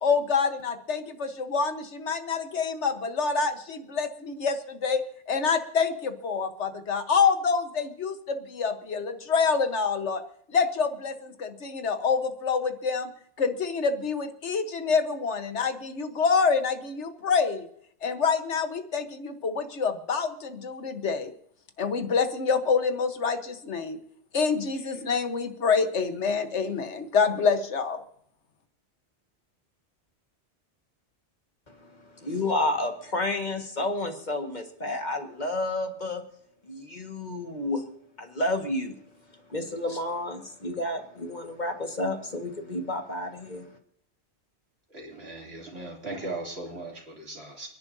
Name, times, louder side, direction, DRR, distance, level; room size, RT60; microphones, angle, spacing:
voice 1, 0.0-10.2 10.5-13.1 13.4-17.7 18.0-21.3 21.8-24.0 24.3-28.0, left 5 dB, 85° left, 8 dB, 1.5 m, -26 dB
voice 2, 31.7-36.2 36.6-37.8 38.2-39.0 39.3-43.8, left 2 dB, 40° left, 4 dB, 1.8 m, -31 dB
voice 3, 44.9-47.7, right 2 dB, 65° right, -1 dB, 3.3 m, -38 dB
29.5 x 10.5 x 2.7 m, 0.69 s
omnidirectional pair, 1.1 m